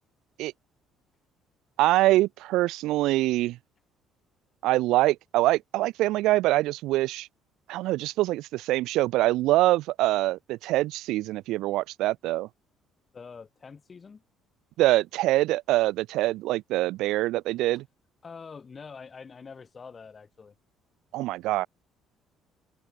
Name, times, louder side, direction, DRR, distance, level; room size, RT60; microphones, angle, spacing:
voice 1, 1.8-3.6 4.6-7.3 7.7-12.5 14.8-17.8 21.1-21.7, right 17 dB, 80° right, 0.7 m, -24 dB
voice 2, 13.1-14.2 18.2-20.5, left 5 dB, 30° left, 6.2 m, -45 dB
open air
cardioid pair, 115°, 0 cm